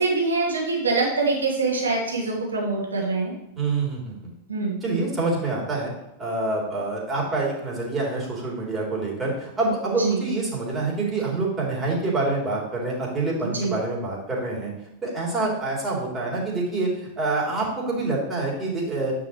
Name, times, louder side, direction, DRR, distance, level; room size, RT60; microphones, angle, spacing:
voice 1, 0.0-3.3 4.5-4.8 9.9-10.2 13.4-13.8, right 3 dB, 80° right, -2 dB, 1.9 m, -24 dB
voice 2, 3.6-4.3 4.8-5.9 6.2-14.7 15.0-16.9 17.2-19.1, right 3 dB, 20° right, -4 dB, 3.2 m, -26 dB
9.1 x 6.0 x 3.1 m, 0.85 s
figure-of-eight pair, 90°, 0 cm